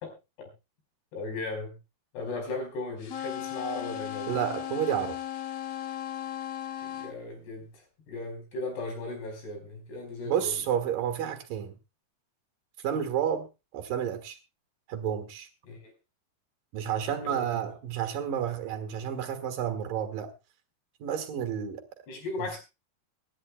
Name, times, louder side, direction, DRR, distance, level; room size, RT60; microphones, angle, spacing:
voice 1, 1.1-1.8 2.1-4.3 6.8-10.6 12.9-13.1 15.6-15.9 17.1-17.6 22.1-22.6, left 2 dB, 85° left, 6.8 m, -37 dB
sound 1, 3.0-7.1, left 11 dB, 65° left, 1.6 m, -36 dB
voice 2, 4.3-5.2 10.3-11.8 12.8-13.5 13.7-14.4 14.9-15.5 16.7-20.3 21.0-21.8 22.4-22.6, right 9 dB, 65° right, 2.9 m, -30 dB
24.5 x 11.5 x 2.3 m
omnidirectional pair, 4.6 m